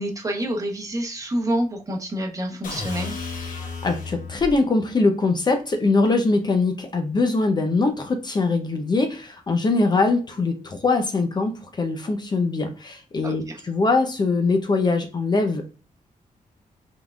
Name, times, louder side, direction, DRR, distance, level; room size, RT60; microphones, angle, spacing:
voice 1, 0.0-3.1 13.2-13.6, right 1 dB, 25° right, 1 dB, 0.9 m, -27 dB
sound 1, 2.6-4.6, left 4 dB, 70° left, 1.3 m, -33 dB
voice 2, 3.5-15.7, left 3 dB, 30° left, 5 dB, 0.6 m, -22 dB
5.6 x 3.6 x 2.4 m, 0.34 s
wide cardioid pair, 160°, 14 cm